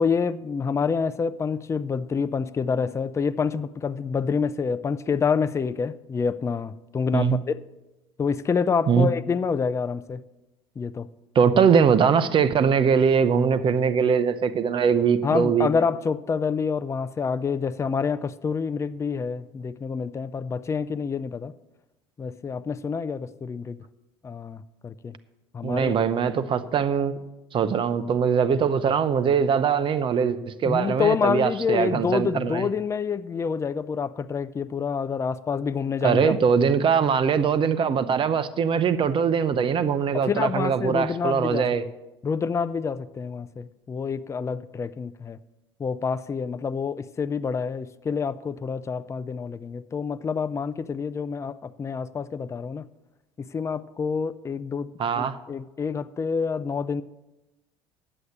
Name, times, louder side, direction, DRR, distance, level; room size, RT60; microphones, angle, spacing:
voice 1, 0.0-7.6 8.2-10.2 10.8-11.1 15.2-21.5 22.2-23.8 24.2-25.1 25.5-25.9 30.6-36.3 40.1-41.7 42.2-45.4 45.8-52.9 53.4-57.0, left 5 dB, 20° left, 0.5 m, -27 dB
voice 2, 11.3-15.7 25.6-27.2 27.5-32.7 36.0-41.8 55.0-55.4, right 6 dB, 40° right, 0.8 m, -22 dB
10.0 x 7.9 x 7.2 m
hypercardioid pair, 70°, 13 cm